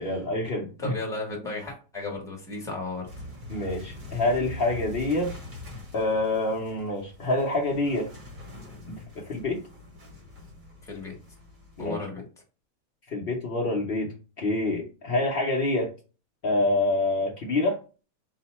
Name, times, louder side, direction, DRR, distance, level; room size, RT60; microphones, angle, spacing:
voice 1, 0.0-0.9 3.5-5.3 5.9-8.1 8.9-9.6 11.8-12.0 13.1-15.9 16.4-17.8, left 2 dB, 80° left, -1 dB, 0.5 m, -27 dB
voice 2, 0.8-3.1 10.8-11.1 11.8-12.2, left 3 dB, ahead, -1 dB, 0.9 m, -34 dB
sound 1, 3.1-11.9, left 2 dB, 35° right, 0.8 m, -43 dB
5.0 x 2.1 x 4.2 m, 0.34 s
omnidirectional pair, 2.0 m